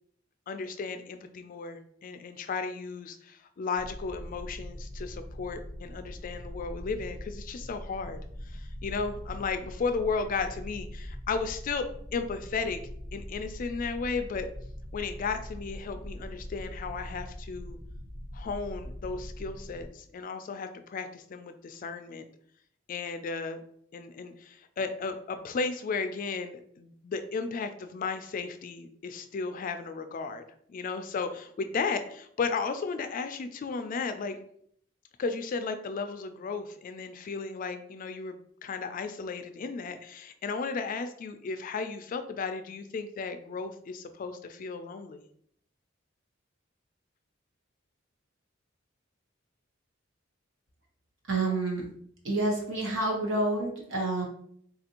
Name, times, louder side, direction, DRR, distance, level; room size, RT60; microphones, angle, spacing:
voice 1, 0.5-8.2 8.5-12.8 13.1-14.5 14.9-17.8 18.3-22.3 22.9-23.6 23.9-30.4 30.7-34.4 35.2-38.4 38.6-45.2, left 4 dB, 45° left, 9 dB, 0.3 m, -34 dB
sound 1, 3.8-19.9, equal, 45° right, 1.3 m, -42 dB
voice 2, 51.3-51.9 52.2-54.2, right 2 dB, 70° right, -1 dB, 1.1 m, -28 dB
3.9 x 2.5 x 2.9 m, 0.65 s
head